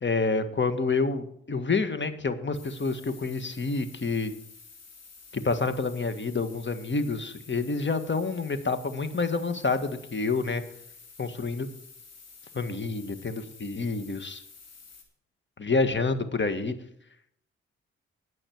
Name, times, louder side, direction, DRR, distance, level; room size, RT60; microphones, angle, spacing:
voice 1, 0.0-4.3 5.3-10.6 11.2-11.7 12.5-14.4 15.6-16.7, left 4 dB, 40° left, 10 dB, 1.7 m, -28 dB
sound 1, 2.5-15.0, left 4 dB, 55° left, 3.0 m, -51 dB
19.5 x 6.5 x 4.6 m, 0.69 s
hypercardioid pair, 40°, 30 cm